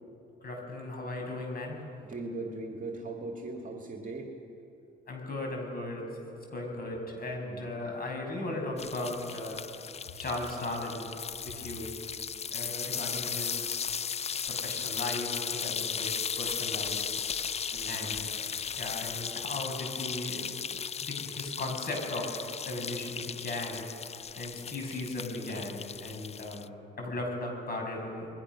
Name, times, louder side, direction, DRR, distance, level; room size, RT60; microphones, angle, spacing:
voice 1, 0.4-1.8 5.1-6.0 6.5-9.7 10.1-11.1 11.4-11.9 12.5-13.9 14.5-17.0 17.9-18.3 18.8-20.4 21.0-22.3 22.7-23.9 24.4-28.3, left 2 dB, 50° left, 1 dB, 6.9 m, -37 dB
voice 2, 2.0-4.3 7.4-7.7 17.7-18.1, right 2 dB, 40° right, 2 dB, 2.3 m, -39 dB
sound 1, 8.8-26.7, left 7 dB, 30° left, 0.5 m, -36 dB
29.0 x 21.5 x 6.4 m, 2.8 s
cardioid pair, 90°, 20 cm